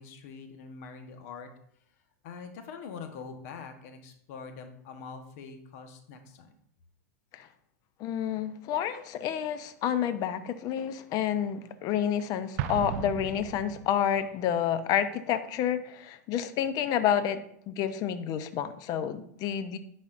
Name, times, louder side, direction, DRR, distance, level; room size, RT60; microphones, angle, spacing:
voice 1, 0.0-1.5 2.2-6.5, left 5 dB, 60° left, 6 dB, 1.1 m, -44 dB
voice 2, 8.0-17.4 17.7-19.8, left 9 dB, 45° left, 12 dB, 0.7 m, -29 dB
Explosion, 12.6-14.2, right 11 dB, 60° right, 0.4 m, -35 dB
10.5 x 4.2 x 2.5 m, 0.67 s
hypercardioid pair, 100°, 9 cm